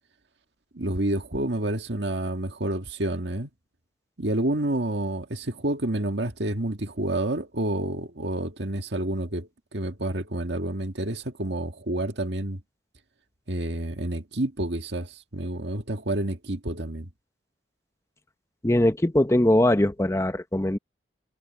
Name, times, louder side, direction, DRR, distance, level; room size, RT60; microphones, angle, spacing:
voice 1, 0.7-3.5 4.2-12.6 13.5-17.1, right 1 dB, 75° right, 2.0 m, -29 dB
voice 2, 18.6-20.8, left 1 dB, 15° left, 0.8 m, -21 dB
head